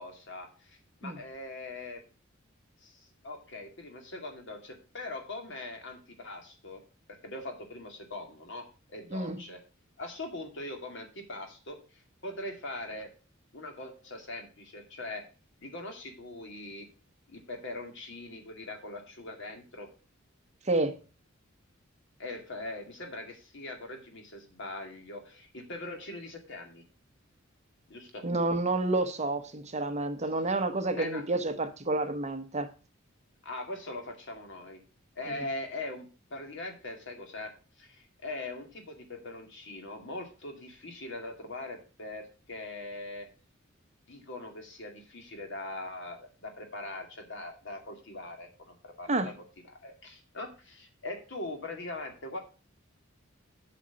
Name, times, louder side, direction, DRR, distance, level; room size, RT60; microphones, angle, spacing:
voice 1, 0.0-2.0 2.8-6.8 7.1-9.6 10.0-13.1 13.5-15.2 15.6-16.9 17.3-19.9 22.2-26.8 27.9-28.2 30.9-31.3 33.4-34.8 35.2-43.3 44.1-49.3 49.7-52.4, left 2 dB, 65° left, 2.3 m, -41 dB
voice 2, 9.1-9.4 20.7-21.0 28.2-32.7 49.1-49.3, right 2 dB, 35° right, 1.0 m, -29 dB
8.3 x 5.1 x 6.9 m
head